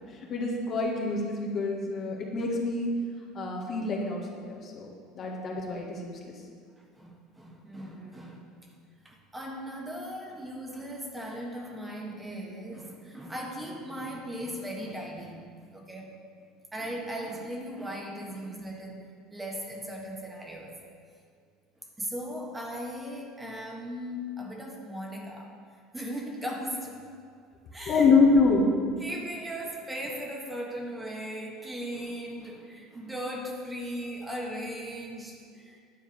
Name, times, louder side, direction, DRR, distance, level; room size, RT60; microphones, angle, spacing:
voice 1, 0.1-2.9 3.3-6.3 27.9-28.7, left 3 dB, 45° left, -1 dB, 1.8 m, -26 dB
voice 2, 6.8-8.4 9.0-16.2 16.7-20.8 22.0-25.5 25.9-27.1 27.7-28.1 29.0-35.8, equal, 15° right, 0 dB, 1.6 m, -38 dB
10.0 x 4.6 x 7.2 m, 2.1 s
hypercardioid pair, 85°, 0 cm